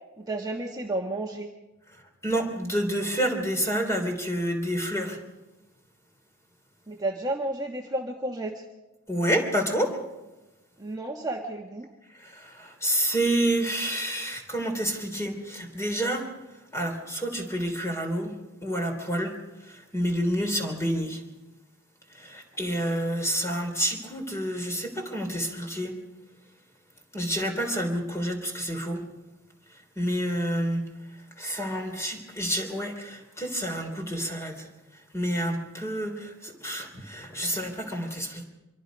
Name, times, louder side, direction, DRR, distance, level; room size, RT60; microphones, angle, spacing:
voice 1, 0.2-1.5 6.9-8.6 10.8-11.9, right 2 dB, 20° right, 0 dB, 1.4 m, -32 dB
voice 2, 2.2-5.2 9.1-10.0 12.1-16.3 16.7-18.3 18.6-19.4 19.6-21.2 22.1-26.0 27.1-29.0 29.9-30.8 31.4-34.7 35.1-38.4, equal, 15° left, 4 dB, 3.5 m, -29 dB
25.0 x 23.5 x 5.2 m, 1.1 s
head